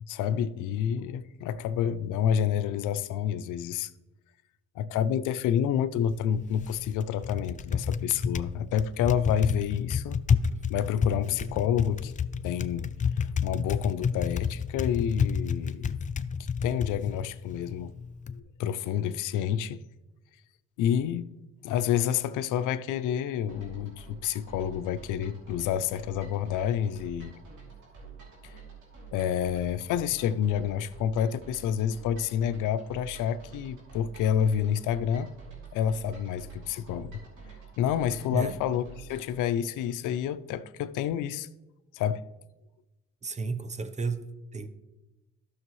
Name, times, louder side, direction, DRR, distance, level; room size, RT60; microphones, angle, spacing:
voice 1, 0.0-3.9 4.8-10.2 10.7-12.1 12.4-12.9 13.2-16.0 16.6-18.0 18.6-19.8 20.8-21.3 21.6-27.4 28.4-28.5 29.1-35.3 35.7-37.2 37.8-41.5 41.9-42.2, left 9 dB, 85° left, 0.5 m, -29 dB
Typing, 6.0-18.4, left 6 dB, 25° left, 0.4 m, -31 dB
sound 1, 23.5-39.4, right 5 dB, 80° right, 3.1 m, -48 dB
voice 2, 43.2-44.7, right 4 dB, 25° right, 0.7 m, -33 dB
13.0 x 6.3 x 3.1 m
cardioid pair, 90°, 30 cm